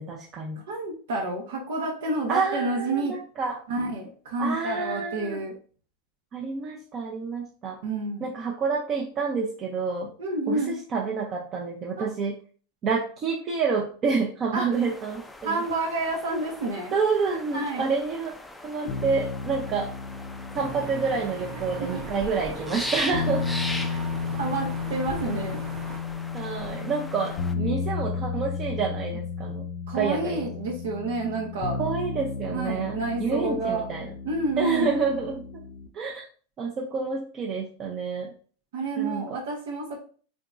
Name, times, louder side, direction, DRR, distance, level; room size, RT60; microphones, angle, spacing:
voice 1, 0.0-0.6 2.3-3.6 4.4-5.4 6.3-7.8 8.2-10.1 10.5-12.3 12.8-15.6 16.9-18.3 18.6-19.9 20.5-23.5 23.9-24.0 26.3-29.6 29.9-30.5 31.8-32.9 33.2-34.1 34.6-35.6 35.9-36.2 36.6-38.3 39.0-39.2, right 5 dB, 30° right, 0 dB, 0.7 m, -28 dB
voice 2, 0.7-3.2 3.7-5.5 7.8-8.3 10.2-10.8 12.0-12.1 14.5-14.7 15.4-16.9 17.5-17.9 21.8-22.0 24.4-25.6 27.5-27.8 29.9-31.8 32.5-33.9 34.2-34.9 38.7-40.0, right 2 dB, 80° right, -1 dB, 1.0 m, -29 dB
sound 1, 14.7-27.5, left 1 dB, 5° left, 0.4 m, -40 dB
sound 2, 18.9-35.9, left 5 dB, 60° left, 0.6 m, -33 dB
sound 3, 20.5-26.0, right 5 dB, 50° right, 1.0 m, -40 dB
3.8 x 3.6 x 2.5 m, 0.42 s
supercardioid pair, 135°, 0 cm